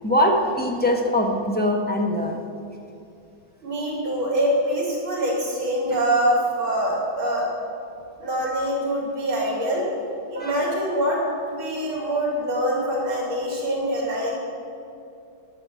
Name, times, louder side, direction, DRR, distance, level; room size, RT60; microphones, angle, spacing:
voice 1, 0.0-2.4 10.3-10.6, left 1 dB, 15° left, 0 dB, 0.3 m, -22 dB
voice 2, 3.6-7.5 8.2-9.9 10.3-11.2 11.5-14.3, right 1 dB, 80° right, -3 dB, 3.6 m, -24 dB
11.0 x 7.0 x 8.6 m, 2.6 s
omnidirectional pair, 2.2 m